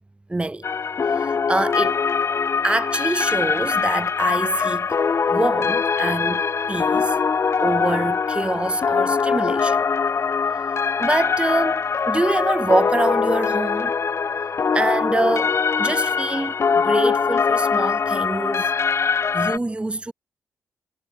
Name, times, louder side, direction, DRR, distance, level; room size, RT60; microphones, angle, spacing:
voice 1, 0.3-0.6 1.0-2.0 2.6-5.0 5.3-6.4 6.7-7.2 7.6-9.8 10.5-13.9 14.7-18.7 19.3-20.1, right 2 dB, 20° right, 5.4 m, -25 dB
sound 1, 0.6-19.6, left 5 dB, 50° left, 5.6 m, -22 dB
cardioid pair, 70°, 6 cm